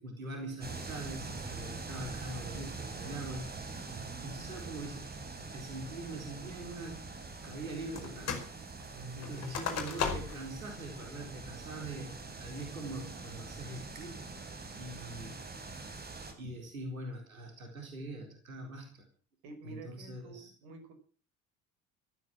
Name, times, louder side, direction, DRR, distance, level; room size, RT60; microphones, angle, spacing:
voice 1, 0.0-4.0 4.2-5.1 5.4-7.1 7.4-8.4 9.2-12.1 12.4-14.4 14.8-15.4 16.4-19.1 19.6-20.5, right 2 dB, 80° right, 3 dB, 4.3 m, -43 dB
sound 1, 0.6-16.3, right 3 dB, 25° right, 4.7 m, -44 dB
voice 2, 3.9-4.3 8.9-9.4 19.4-20.9, right 3 dB, 55° right, 7 dB, 5.8 m, -48 dB
sound 2, 8.0-8.5 8.8-10.5 11.0-11.1 11.6-12.0 12.5-12.9, left 6 dB, 40° left, 5.1 m, -36 dB
15.5 x 14.0 x 6.3 m, 0.40 s
figure-of-eight pair, 65°, 41 cm